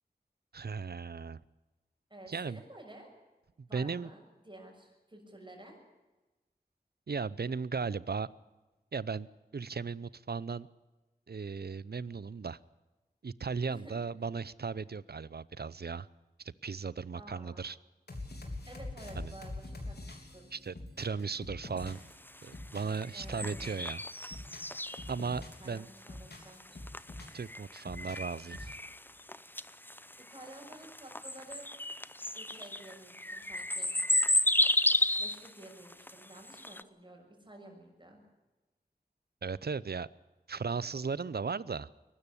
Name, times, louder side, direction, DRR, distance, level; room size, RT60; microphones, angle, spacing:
voice 1, 0.5-1.4 2.3-2.6 3.7-4.1 7.1-8.3 8.9-9.3 9.5-10.7 11.3-12.6 13.2-16.1 16.6-17.8 19.2-19.3 20.5-22.0 22.4-24.0 25.1-25.9 27.3-28.7 39.4-40.1 40.5-41.9, right 5 dB, 75° right, 20 dB, 0.7 m, -36 dB
voice 2, 2.1-3.1 3.7-5.8 13.7-13.9 17.1-17.6 18.7-19.9 20.3-20.5 23.1-23.7 25.6-26.8 30.3-31.6 32.3-33.9 35.2-38.2, right 1 dB, 30° right, 1 dB, 6.5 m, -51 dB
sound 1, 18.1-22.1 22.4-23.9 24.2-25.7 26.0-27.4 27.7-28.8, left 2 dB, 80° left, 3.6 m, -44 dB
sound 2, 21.8-36.8, left 1 dB, 10° left, 0.7 m, -33 dB
22.5 x 12.5 x 9.9 m, 1.1 s
wide cardioid pair, 55°, 17 cm